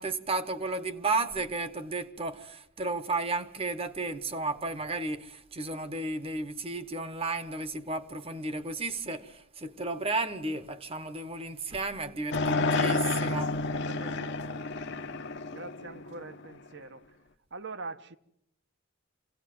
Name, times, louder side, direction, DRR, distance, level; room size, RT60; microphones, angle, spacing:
voice 1, 0.0-13.5, right 3 dB, 25° right, 1.1 m, -33 dB
sound 1, 12.3-16.7, left 3 dB, 55° left, 1.1 m, -30 dB
voice 2, 12.4-12.9 13.7-17.2 17.5-18.2, right 3 dB, 55° right, 1.2 m, -45 dB
26.0 x 17.5 x 7.7 m
head